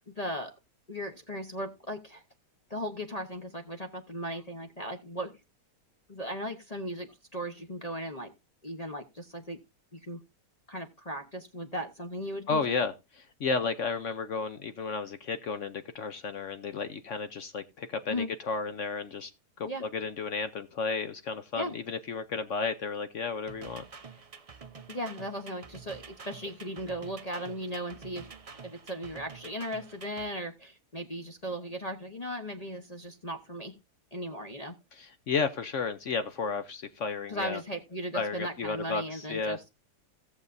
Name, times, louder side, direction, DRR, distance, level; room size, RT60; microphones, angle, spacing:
voice 1, 0.1-0.5 0.9-2.2 2.7-5.4 6.1-8.3 8.6-9.6 9.9-10.2 10.7-12.9 18.1-18.3 19.6-19.9 21.5-21.7 24.9-28.3 28.6-33.7 34.1-34.7 37.3-39.6, equal, 30° left, 0.8 m, -37 dB
voice 2, 12.5-12.9 13.4-19.3 19.6-23.8 35.0-37.6 38.1-39.6, left 5 dB, 60° left, 0.9 m, -33 dB
sound 1, 23.5-30.3, right 5 dB, 50° right, 0.4 m, -48 dB
16.5 x 7.2 x 2.6 m
omnidirectional pair, 1.8 m